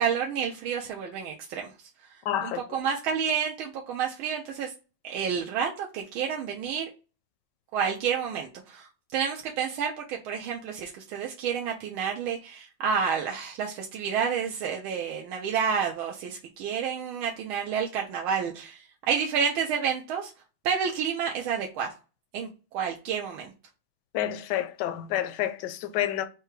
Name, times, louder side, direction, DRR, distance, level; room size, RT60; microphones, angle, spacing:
voice 1, 0.0-1.7 2.4-4.7 5.0-6.9 7.7-8.9 9.1-20.3 20.6-21.9 22.3-23.5, right 7 dB, 85° right, 1.5 m, -29 dB
voice 2, 2.3-2.6 24.1-26.3, left 12 dB, 75° left, 1.0 m, -29 dB
4.6 x 2.2 x 4.6 m
omnidirectional pair, 2.3 m